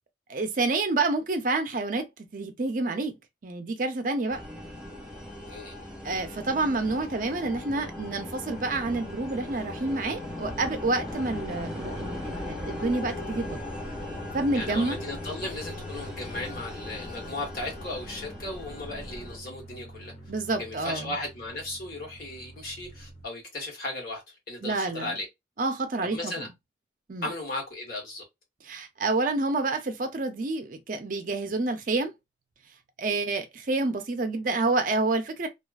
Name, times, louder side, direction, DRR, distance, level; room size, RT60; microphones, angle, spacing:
voice 1, 0.3-2.1 2.3-3.1 3.4-4.4 6.0-13.7 14.3-15.0 20.3-21.1 24.6-25.1 25.6-26.5 27.1-27.3 28.7-32.1 33.0-35.5, right 3 dB, 45° right, 0.5 m, -28 dB
sound 1, 4.3-19.4, left 1 dB, 5° right, 0.6 m, -38 dB
sound 2, 10.1-23.3, left 2 dB, 35° left, 0.6 m, -46 dB
voice 2, 14.5-20.1 20.6-25.3 26.1-26.5 27.2-28.2, left 2 dB, 55° left, 1.1 m, -36 dB
2.4 x 2.3 x 2.3 m
head